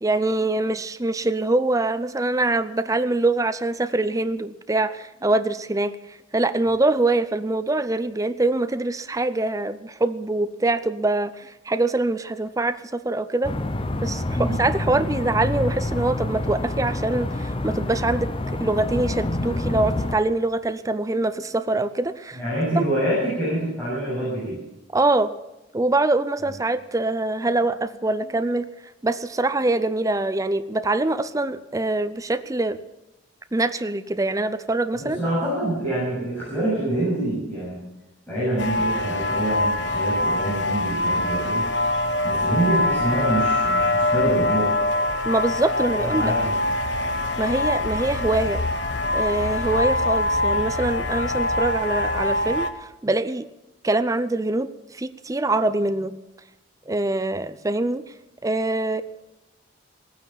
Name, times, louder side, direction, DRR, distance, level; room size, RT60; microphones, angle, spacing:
voice 1, 0.0-13.6 14.0-22.4 22.8-22.9 24.9-25.3 25.7-28.7 29.0-32.8 33.5-35.2 45.2-46.3 47.4-48.6 49.1-53.5 53.8-56.2 56.9-58.0 58.4-59.0, right 2 dB, 15° right, 12 dB, 0.5 m, -24 dB
sound 1, 13.4-20.2, left 2 dB, 30° left, 0.7 m, -27 dB
voice 2, 22.3-24.6 34.9-37.8 38.3-41.7 42.2-44.7 46.0-46.7, right 1 dB, 10° left, -10 dB, 7.8 m, -26 dB
sound 2, 38.6-52.7, left 1 dB, 65° left, 1.1 m, -24 dB
18.5 x 9.3 x 7.4 m, 0.97 s
head